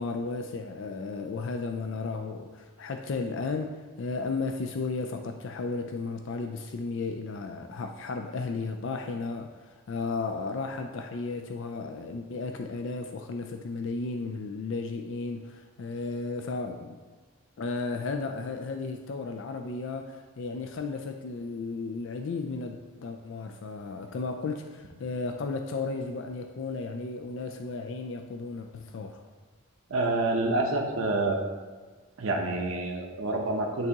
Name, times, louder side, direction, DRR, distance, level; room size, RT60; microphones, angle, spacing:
voice 1, 0.0-17.0 17.6-29.2, left 3 dB, 55° left, 5 dB, 0.3 m, -34 dB
voice 2, 29.9-31.4 32.2-33.9, right 2 dB, 70° right, 1 dB, 0.8 m, -27 dB
10.5 x 3.5 x 2.9 m, 1.4 s
head